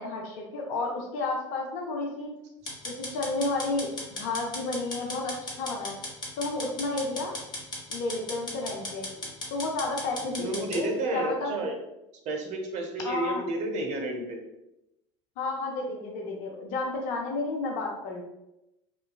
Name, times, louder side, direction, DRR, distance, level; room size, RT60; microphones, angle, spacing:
voice 1, 0.0-2.3 2.8-5.9 6.4-7.4 7.9-9.1 9.5-11.6 13.0-13.4 15.4-18.2, left 3 dB, 55° left, 0 dB, 0.6 m, -31 dB
sound 1, 2.7-10.8, left 2 dB, 25° left, 0.8 m, -37 dB
voice 2, 10.4-11.8 12.3-14.4, right 2 dB, 45° right, 2 dB, 0.6 m, -31 dB
2.9 x 2.2 x 2.2 m, 0.89 s
hypercardioid pair, 75°, 16 cm